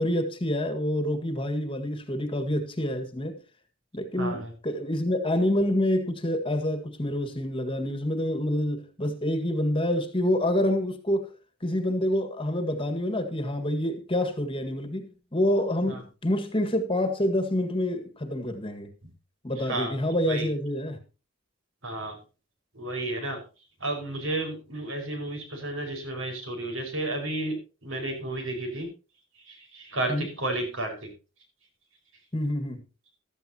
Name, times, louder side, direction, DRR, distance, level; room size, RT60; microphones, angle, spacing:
voice 1, 0.0-3.4 3.9-11.3 11.6-18.9 19.4-21.0 30.1-30.3 32.3-32.8, left 1 dB, 25° left, 1.8 m, -27 dB
voice 2, 4.2-4.5 15.9-16.0 19.6-20.0 20.3-20.5 21.8-22.2 22.7-23.4 23.8-28.9 29.4-31.1, right 2 dB, 65° right, 5.1 m, -32 dB
15.0 x 13.0 x 2.9 m
head